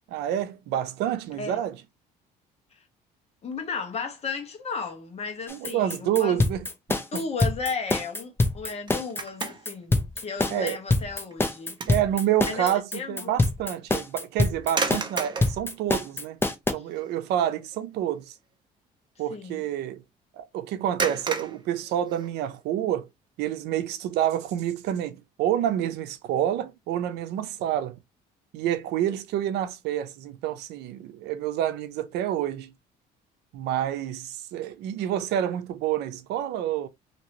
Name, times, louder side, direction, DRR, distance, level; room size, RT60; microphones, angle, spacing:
voice 1, 0.1-1.8 5.5-7.2 10.5-10.8 11.9-16.4 16.7-18.3 19.2-20.0 20.4-23.1 23.4-28.0 28.5-32.7 33.5-36.9, right 11 dB, 85° right, 0.6 m, -28 dB
voice 2, 3.4-6.4 7.1-11.8 12.5-13.3 19.3-19.6, left 5 dB, 40° left, 1.2 m, -34 dB
sound 1, 5.5-16.7, left 2 dB, 15° left, 0.6 m, -25 dB
sound 2, 8.7-9.8 10.3-10.5 11.0-12.1 12.4-12.6 14.6-15.6 16.4-16.5 16.9-17.2 17.5-17.7 21.0-22.6, right 4 dB, 25° right, 0.6 m, -33 dB
2.9 x 2.9 x 2.9 m
cardioid pair, 110°, 17 cm